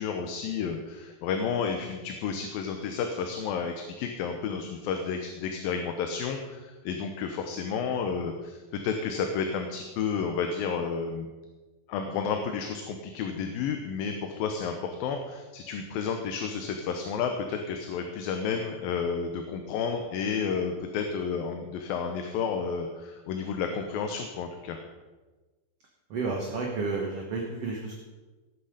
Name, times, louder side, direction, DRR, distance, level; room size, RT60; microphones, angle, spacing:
voice 1, 0.0-11.3 11.9-24.8, left 6 dB, 75° left, 5 dB, 2.6 m, -31 dB
voice 2, 26.1-27.9, right 3 dB, 55° right, 0 dB, 1.9 m, -31 dB
18.5 x 8.5 x 5.1 m, 1.2 s
omnidirectional pair, 4.4 m